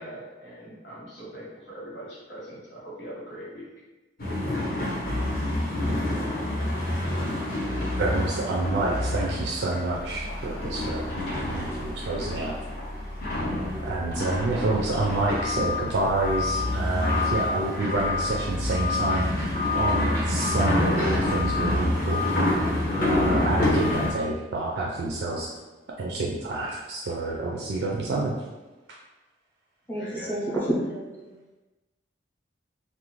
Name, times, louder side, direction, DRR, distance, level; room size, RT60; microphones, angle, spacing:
voice 1, 0.0-3.7 29.9-30.5, right 1 dB, 80° left, -7 dB, 1.1 m, -41 dB
sound 1, 4.2-24.1, left 2 dB, 50° left, 0.6 m, -27 dB
voice 2, 8.0-12.6 13.8-19.3 19.7-22.2 23.0-25.5 26.0-28.3, right 2 dB, 65° right, -3 dB, 0.3 m, -28 dB
voice 3, 29.9-31.3, right 1 dB, 10° left, -6 dB, 0.5 m, -29 dB
2.5 x 2.1 x 3.0 m, 1.2 s
head